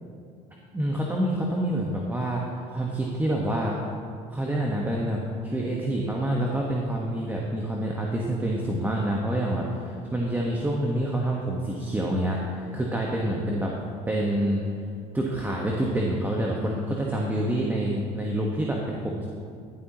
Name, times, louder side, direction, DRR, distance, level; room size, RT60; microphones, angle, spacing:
voice 1, 0.7-2.4 2.7-3.8 4.3-13.7 14.1-14.6 15.1-19.3, right 1 dB, 10° right, -2 dB, 1.4 m, -27 dB
12.0 x 11.0 x 3.1 m, 2.4 s
supercardioid pair, 75°, 17 cm